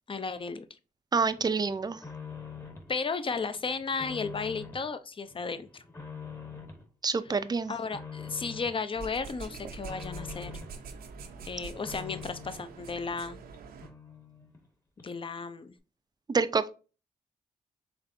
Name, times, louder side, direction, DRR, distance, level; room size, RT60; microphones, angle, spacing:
voice 1, 0.1-0.7 2.9-5.8 7.7-10.5 11.4-13.4 15.0-15.7, left 4 dB, 35° left, 0.6 m, -34 dB
voice 2, 1.1-2.0 7.0-7.7 16.3-16.7, right 4 dB, 25° right, 0.4 m, -27 dB
sound 1, 1.3-2.9 3.3-4.9 5.3-6.9 7.2-8.8 9.2-10.8 11.2-12.7 13.2-13.3 13.5-13.6 13.8-14.7 15.0-15.1, left 6 dB, 15° left, 1.1 m, -45 dB
sound 2, 8.9-13.9, right 4 dB, 90° right, 0.7 m, -44 dB
4.3 x 3.2 x 2.6 m
cardioid pair, 65°, 15 cm